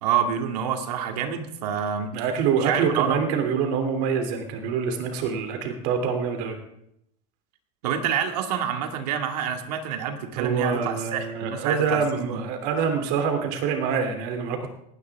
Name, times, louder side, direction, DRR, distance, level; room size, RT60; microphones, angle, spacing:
voice 1, 0.0-2.1 2.6-3.2 7.8-12.4, right 8 dB, 75° right, 5 dB, 2.4 m, -27 dB
voice 2, 2.1-6.6 10.4-14.7, right 6 dB, 55° right, 5 dB, 3.1 m, -25 dB
18.5 x 16.5 x 3.7 m, 0.76 s
supercardioid pair, 125°, 20 cm